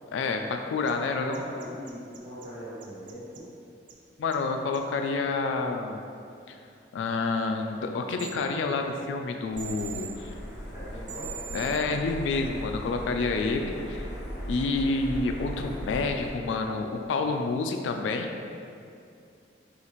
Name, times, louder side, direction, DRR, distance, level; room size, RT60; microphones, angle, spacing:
voice 1, 0.1-1.4 4.2-6.0 6.5-6.6 6.9-10.3 11.5-14.1 14.5-18.3, left 3 dB, 85° left, 5 dB, 0.3 m, -28 dB
sound 1, 0.9-1.0 1.3-2.5 2.8-3.4 3.9-4.0 4.3-4.4 4.7-4.8 8.2-8.3 9.6-10.1 11.1-11.8, right 9 dB, 45° right, 0.3 m, -40 dB
voice 2, 1.2-3.5 10.7-11.4, equal, 15° right, -11 dB, 1.3 m, -41 dB
sound 2, 9.5-16.3, equal, 40° left, 1.3 m, -38 dB
5.6 x 2.4 x 3.0 m, 2.5 s
head